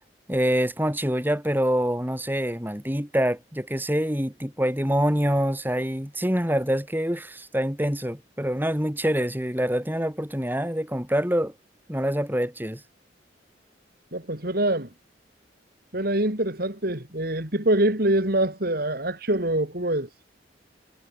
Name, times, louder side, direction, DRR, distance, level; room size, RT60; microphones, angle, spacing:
voice 1, 0.3-11.5 11.9-12.8, equal, 10° right, 7.7 m, -25 dB
voice 2, 14.1-14.9 15.9-20.1, right 1 dB, 55° right, 4.2 m, -24 dB
head